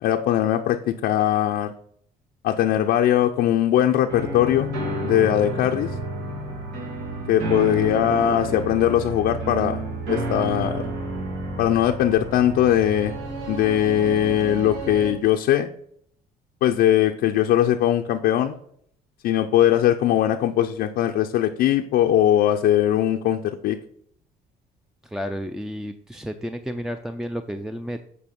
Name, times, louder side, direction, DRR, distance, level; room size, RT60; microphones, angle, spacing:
voice 1, 0.0-1.7 2.4-4.7 5.0-5.9 7.3-9.8 10.1-10.8 11.6-13.1 13.5-15.7 16.6-18.6 19.2-23.8, left 11 dB, 75° left, 3 dB, 0.6 m, -20 dB
sound 1, 4.1-15.1, right 1 dB, 85° right, 2.7 m, -30 dB
voice 2, 25.0-28.1, equal, 5° right, 7 dB, 0.4 m, -31 dB
8.6 x 4.7 x 5.2 m, 0.66 s
cardioid pair, 110°, 17 cm